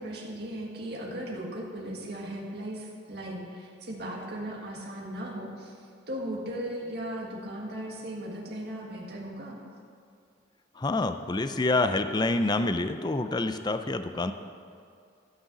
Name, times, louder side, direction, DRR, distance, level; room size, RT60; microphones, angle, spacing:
voice 1, 0.0-9.6, right 1 dB, 60° right, -2 dB, 1.8 m, -37 dB
voice 2, 10.8-14.3, left 2 dB, 20° left, 9 dB, 0.4 m, -27 dB
13.5 x 6.6 x 6.0 m, 2.4 s
head